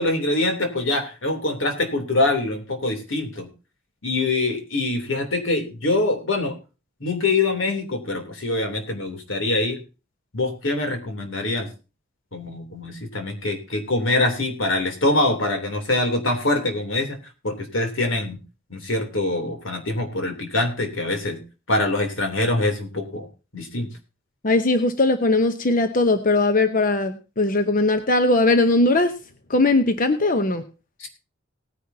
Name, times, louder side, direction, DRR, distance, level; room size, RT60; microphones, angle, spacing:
voice 1, 0.0-3.5 4.0-6.5 7.0-9.8 10.3-11.7 12.3-17.2 17.4-18.4 18.7-21.4 21.7-23.3 23.5-23.9 31.0-31.1, left 2 dB, 85° left, 5 dB, 3.2 m, -24 dB
voice 2, 24.4-29.1 29.5-30.6, left 2 dB, 45° left, 9 dB, 0.9 m, -19 dB
18.5 x 10.0 x 2.8 m, 0.31 s
head